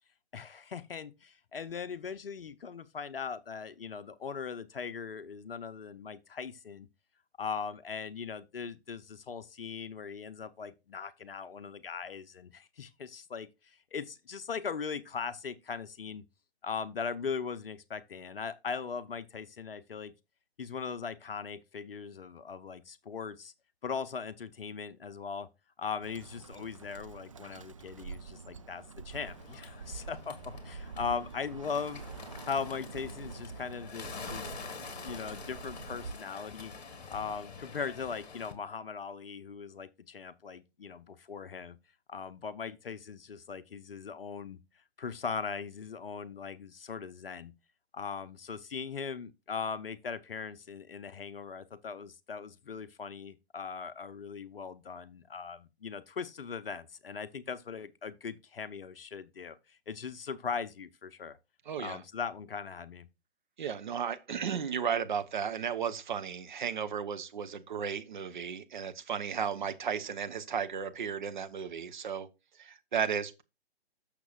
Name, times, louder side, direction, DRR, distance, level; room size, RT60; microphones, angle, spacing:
voice 1, 0.3-6.9 7.4-16.2 16.6-20.1 20.6-23.5 23.8-25.5 25.8-32.0 32.4-34.5 35.0-36.7 37.1-41.8 42.1-44.6 45.0-47.5 47.9-61.4 61.8-63.1, left 6 dB, 60° left, 0.7 m, -39 dB
Bird, 26.0-36.1, right 5 dB, 30° right, 0.4 m, -46 dB
Bird 2, 29.1-38.5, left 5 dB, 40° left, 2.2 m, -47 dB
voice 2, 61.7-62.0 63.6-72.3 72.6-73.4, right 7 dB, 45° right, 0.9 m, -34 dB
12.0 x 6.6 x 2.4 m
figure-of-eight pair, 140°, 32 cm